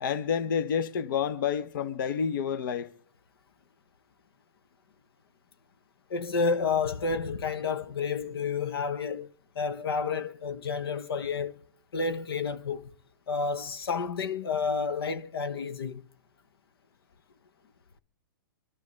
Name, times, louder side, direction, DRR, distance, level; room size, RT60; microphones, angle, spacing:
voice 1, 0.0-2.9, left 7 dB, 60° left, 0.9 m, -29 dB
voice 2, 6.1-9.3 9.5-11.5 11.9-12.9 13.3-16.0, left 5 dB, 85° left, 1.0 m, -30 dB
25.0 x 11.0 x 3.2 m
hypercardioid pair, 145°, 12 cm